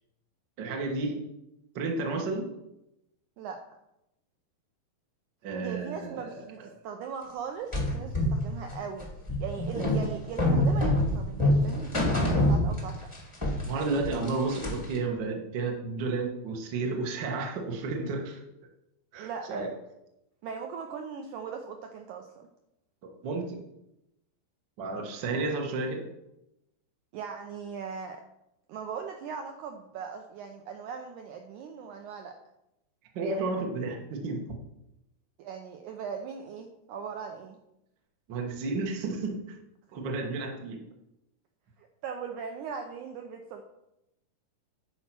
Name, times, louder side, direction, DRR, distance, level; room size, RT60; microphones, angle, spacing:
voice 1, 0.6-1.2 1.7-2.5 5.4-6.7 13.6-18.4 19.1-19.7 23.0-23.6 24.8-26.1 33.1-34.4 38.3-39.4 39.9-40.8, right 3 dB, 55° right, 1 dB, 1.3 m, -32 dB
voice 2, 5.5-9.1 9.4-13.0 19.2-19.7 20.4-22.5 27.1-28.2 28.7-32.3 35.4-37.6 41.8-43.6, right 6 dB, 75° right, 4 dB, 1.9 m, -39 dB
sound 1, 7.7-13.2 13.4-15.0, left 1 dB, 25° left, 0.6 m, -26 dB
10.5 x 4.7 x 6.0 m, 0.86 s
omnidirectional pair, 4.2 m